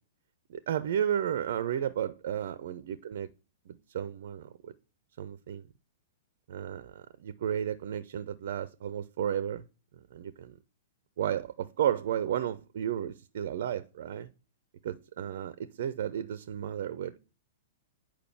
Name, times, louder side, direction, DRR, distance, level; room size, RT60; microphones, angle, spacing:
voice 1, 0.5-3.3 3.7-4.7 5.2-5.7 6.5-9.6 10.1-10.6 11.2-14.3 14.8-17.2, right 9 dB, 55° right, 0.4 m, -33 dB
8.9 x 4.9 x 4.6 m
figure-of-eight pair, 105°, 0 cm